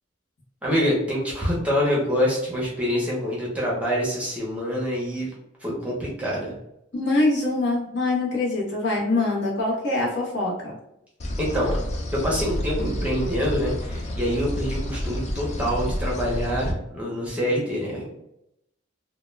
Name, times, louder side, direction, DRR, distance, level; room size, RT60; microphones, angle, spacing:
voice 1, 0.6-5.3 5.6-6.5 11.4-11.8 12.2-18.1, equal, 5° right, -4 dB, 0.6 m, -26 dB
voice 2, 6.9-10.8, left 2 dB, 65° left, -4 dB, 0.9 m, -24 dB
sound 1, 11.2-16.7, equal, 35° left, 0.3 m, -29 dB
2.1 x 2.1 x 3.1 m, 0.82 s
head